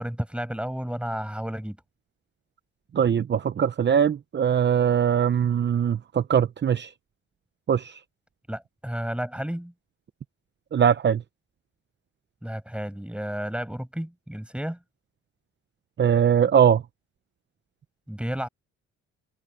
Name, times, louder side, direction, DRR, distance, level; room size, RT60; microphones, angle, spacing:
voice 1, 0.0-1.8 8.5-9.7 12.4-14.8 18.1-18.5, equal, 5° right, 5.7 m, -32 dB
voice 2, 2.9-6.9 7.7-7.9 10.7-11.2 16.0-16.8, right 8 dB, 35° right, 0.8 m, -21 dB
cardioid pair, 90°, 30 cm